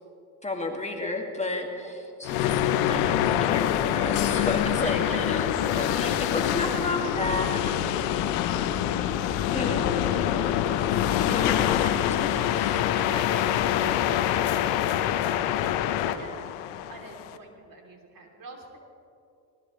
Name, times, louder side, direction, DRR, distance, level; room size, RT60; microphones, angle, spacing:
voice 1, 0.4-2.5 2.9-7.7 9.3-9.9 11.2-12.8, left 2 dB, 15° left, 1 dB, 2.2 m, -32 dB
sound 1, 2.2-17.4, left 11 dB, 85° left, 0.9 m, -25 dB
voice 2, 4.7-6.2 11.1-11.4 12.9-15.1 15.8-16.6 16.9-18.8, right 2 dB, 45° right, 1 dB, 3.3 m, -44 dB
20.5 x 17.5 x 3.2 m, 2.5 s
supercardioid pair, 70°, 45 cm